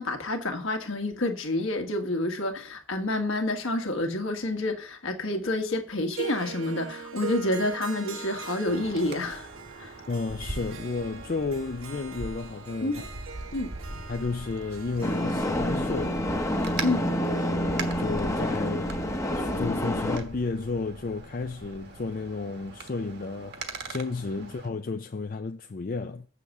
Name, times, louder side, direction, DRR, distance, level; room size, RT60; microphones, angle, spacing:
voice 1, 0.0-9.5 9.8-9.9 12.8-13.0 13.5-13.7 16.8-17.1 24.4-24.5, left 2 dB, 70° left, 1.6 m, -29 dB
Harp, 6.1-17.4, right 6 dB, 70° right, 1.1 m, -42 dB
Wind, 8.7-24.7, right 3 dB, 50° right, 1.3 m, -41 dB
voice 2, 10.1-13.1 14.1-16.3 16.9-19.0 19.3-26.3, left 3 dB, 40° left, 0.4 m, -32 dB
sound 1, 15.0-20.2, equal, 15° left, 0.8 m, -28 dB
6.7 x 6.7 x 7.2 m
head